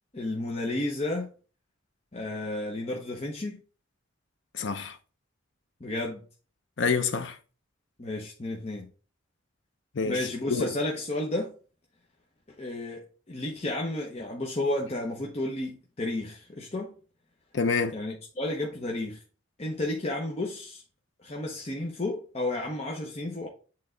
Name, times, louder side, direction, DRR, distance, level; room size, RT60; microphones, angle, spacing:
voice 1, 0.1-1.3 2.1-3.6 5.8-6.2 8.0-8.9 10.0-11.5 12.5-13.0 13.3-16.9 17.9-19.2 19.6-20.8 21.2-23.5, left 1 dB, 30° left, 0.9 m, -32 dB
voice 2, 4.5-5.0 6.8-7.4 10.0-10.6 17.5-17.9, left 5 dB, 65° left, 0.6 m, -27 dB
7.7 x 3.7 x 3.8 m
head